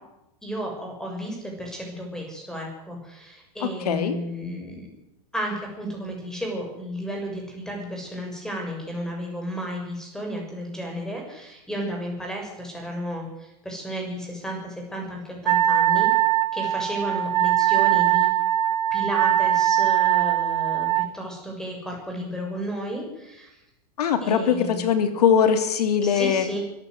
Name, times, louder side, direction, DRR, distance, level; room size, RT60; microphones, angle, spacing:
voice 1, 0.4-4.9 5.3-16.1 16.5-18.3 18.9-23.6 24.2-24.8 26.0-26.6, equal, 5° left, 1 dB, 6.9 m, -33 dB
voice 2, 3.6-4.2 24.0-26.4, left 7 dB, 80° left, 9 dB, 3.1 m, -21 dB
Wind instrument woodwind instrument, 15.5-21.1, right 13 dB, 85° right, 1.0 m, -21 dB
23.5 x 15.0 x 8.1 m, 0.89 s
supercardioid pair, 145°, 20 cm